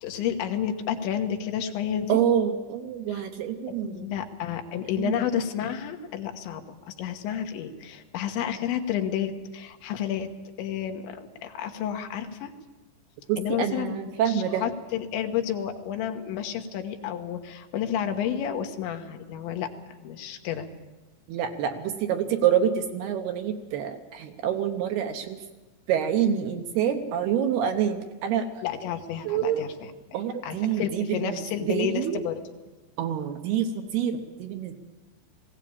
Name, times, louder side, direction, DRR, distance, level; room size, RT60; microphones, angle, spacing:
voice 1, 0.0-2.2 3.1-3.3 3.7-10.3 10.6-12.5 13.4-20.7 28.6-29.9 30.4-32.4, left 9 dB, 80° left, 5 dB, 3.6 m, -31 dB
voice 2, 2.1-4.1 5.0-5.4 13.3-14.6 21.3-25.4 25.9-28.6 29.3-29.6 30.1-32.2 33.0-34.7, right 9 dB, 70° right, 6 dB, 2.7 m, -27 dB
20.0 x 17.0 x 8.7 m, 1.2 s
omnidirectional pair, 5.3 m